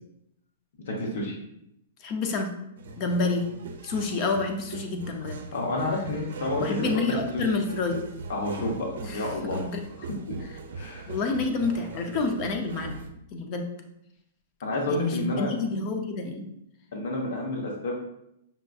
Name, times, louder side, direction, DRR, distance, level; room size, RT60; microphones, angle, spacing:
voice 1, 0.9-1.3 5.5-6.9 7.3-7.4 8.3-9.6 10.0-10.1 10.8-11.1 14.6-15.5 16.9-18.0, left 2 dB, 55° left, -1 dB, 0.8 m, -30 dB
voice 2, 2.0-2.5 3.0-3.5 3.8-5.4 6.6-8.0 9.0-9.3 9.5-9.8 11.1-13.0 13.3-13.7 14.9-16.5, left 3 dB, 25° left, 4 dB, 0.4 m, -28 dB
sound 1, 2.8-13.1, right 4 dB, 70° right, 0.5 m, -40 dB
5.5 x 2.5 x 2.3 m, 0.80 s
hypercardioid pair, 175°, 0 cm